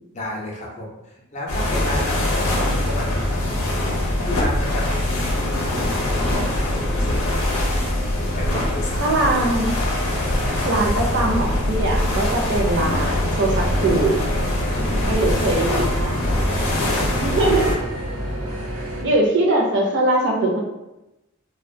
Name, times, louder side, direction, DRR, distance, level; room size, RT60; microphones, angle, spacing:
voice 1, 0.1-3.6 4.2-7.5 8.2-9.5 15.2-15.6 16.8-17.6, left 1 dB, 35° left, -2 dB, 0.5 m, -33 dB
sound 1, 1.5-17.8, left 1 dB, 85° left, 0.6 m, -23 dB
voice 2, 9.0-9.7 10.6-14.2 15.0-16.3 17.1-17.8 19.0-20.6, right 2 dB, 55° right, 0 dB, 0.5 m, -21 dB
sound 2, 13.5-19.0, equal, 85° right, 1.0 m, -30 dB
2.3 x 2.1 x 2.6 m, 0.94 s
head